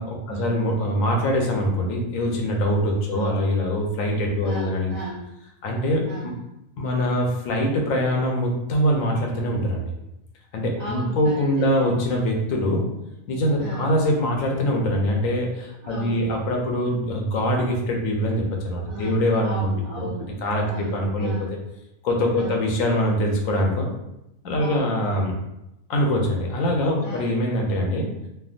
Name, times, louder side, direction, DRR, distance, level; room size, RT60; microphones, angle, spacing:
voice 1, 0.0-4.9 5.6-6.3 6.8-9.9 10.5-12.8 13.3-19.7 20.4-21.3 22.0-23.9 24.4-25.4 25.9-28.1, equal, 90° left, 1 dB, 1.0 m, -23 dB
voice 2, 3.1-3.4 4.4-5.3 6.0-6.4 10.8-11.7 13.5-13.9 15.8-16.4 18.9-21.5 22.3-22.6 24.5-25.0 27.0-27.4, right 2 dB, 50° right, -7 dB, 0.5 m, -36 dB
3.3 x 2.1 x 2.4 m, 0.88 s
omnidirectional pair, 1.4 m